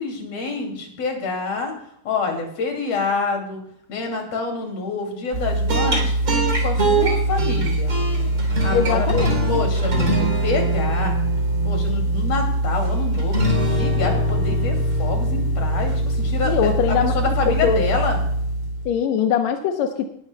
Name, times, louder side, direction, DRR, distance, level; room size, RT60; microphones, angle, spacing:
voice 1, 0.0-1.7 2.0-3.6 3.9-7.9 8.6-9.1 9.5-11.1 11.6-13.4 13.7-18.2, left 4 dB, 50° left, 2 dB, 3.4 m, -27 dB
sound 1, 5.3-18.9, right 1 dB, 25° right, 3.3 m, -21 dB
voice 2, 8.7-9.6 16.4-17.8 18.8-20.1, left 8 dB, 75° left, 5 dB, 1.7 m, -22 dB
19.5 x 12.5 x 2.2 m, 0.67 s
omnidirectional pair, 4.0 m